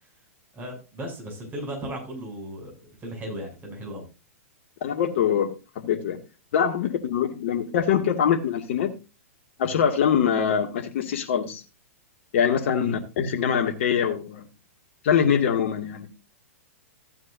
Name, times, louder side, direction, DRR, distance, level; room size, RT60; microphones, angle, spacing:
voice 1, 0.5-4.1 12.8-13.0, equal, 25° right, 1 dB, 7.4 m, -36 dB
voice 2, 4.8-6.2 6.5-8.9 9.6-11.6 12.3-14.5 15.0-16.1, left 8 dB, 55° left, 4 dB, 2.2 m, -23 dB
15.5 x 9.6 x 2.7 m, 0.30 s
hypercardioid pair, 115°, 8 cm